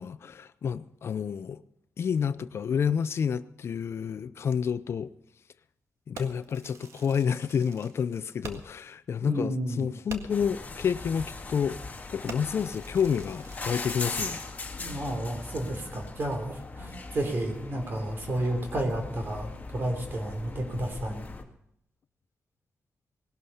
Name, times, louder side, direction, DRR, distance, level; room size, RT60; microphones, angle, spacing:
voice 1, 0.0-1.6 2.0-5.1 6.1-11.8 12.1-14.4, left 7 dB, 60° left, 0.5 m, -29 dB
Fireworks, 6.1-8.9 9.2-9.3 9.7-9.8 10.1-10.5 11.1-11.3 11.7-11.9 12.3-14.4, right 4 dB, 85° right, 1.8 m, -46 dB
voice 2, 9.2-9.9 14.8-21.3, right 1 dB, 50° right, 3.4 m, -31 dB
sound 1, 10.3-21.4, left 3 dB, 30° left, 2.1 m, -40 dB
19.0 x 12.0 x 5.6 m
cardioid pair, 105°, 5 cm